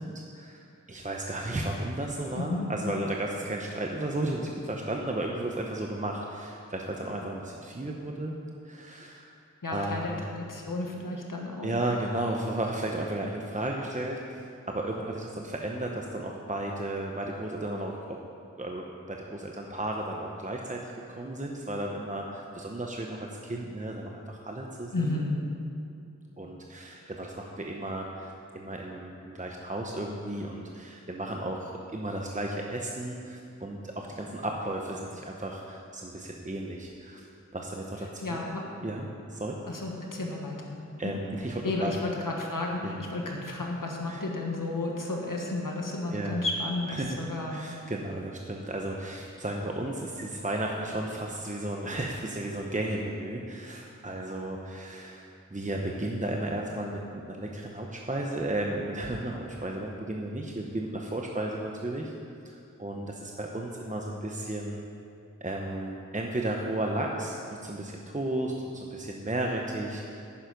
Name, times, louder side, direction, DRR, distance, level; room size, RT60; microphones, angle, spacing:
voice 1, 0.0-8.4 8.6-9.3 9.7-10.2 11.6-18.2 18.5-25.2 26.4-37.3 37.5-38.4 38.8-39.0 39.3-39.6 41.0-42.0 42.8-43.0 44.1-44.2 46.1-46.4 46.9-47.2 47.5-62.1 62.4-64.8 65.4-70.2, right 1 dB, 25° right, 0 dB, 0.9 m, -34 dB
voice 2, 2.4-2.7 9.6-11.8 24.9-25.3 38.2-38.7 39.7-41.1 41.6-47.7, left 2 dB, 85° left, 0 dB, 1.7 m, -32 dB
10.5 x 9.9 x 5.3 m, 2.5 s
wide cardioid pair, 45°, 32 cm